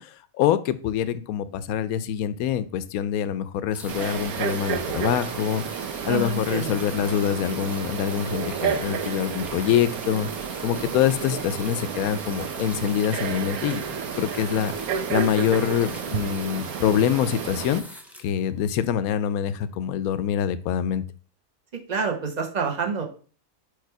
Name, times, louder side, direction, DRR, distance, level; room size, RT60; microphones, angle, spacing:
voice 1, 0.0-10.3 10.6-14.7 15.1-17.8 18.2-21.0, left 9 dB, 80° left, 14 dB, 1.0 m, -25 dB
sound 1, 3.7-19.1 20.0-20.1, equal, ahead, 0.5 m, -42 dB
Frog, 3.9-17.8, right 7 dB, 85° right, 1.1 m, -31 dB
voice 2, 6.0-6.8 21.9-23.0, right 5 dB, 35° right, 3 dB, 1.0 m, -27 dB
4.8 x 4.8 x 4.5 m, 0.40 s
omnidirectional pair, 1.5 m